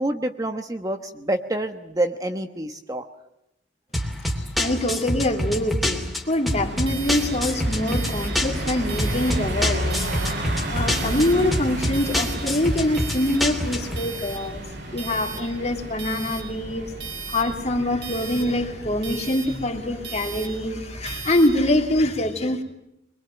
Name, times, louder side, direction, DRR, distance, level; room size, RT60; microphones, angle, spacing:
voice 1, 0.0-3.0, right 1 dB, 20° right, 6 dB, 1.1 m, -27 dB
sound 1, 3.9-14.0, equal, ahead, 3.1 m, -27 dB
voice 2, 4.6-10.0 10.7-16.9 17.3-22.6, left 1 dB, 35° left, 3 dB, 3.0 m, -24 dB
sound 2, 6.5-22.0, right 1 dB, 60° right, 4.7 m, -32 dB
24.5 x 22.5 x 9.0 m, 0.82 s
head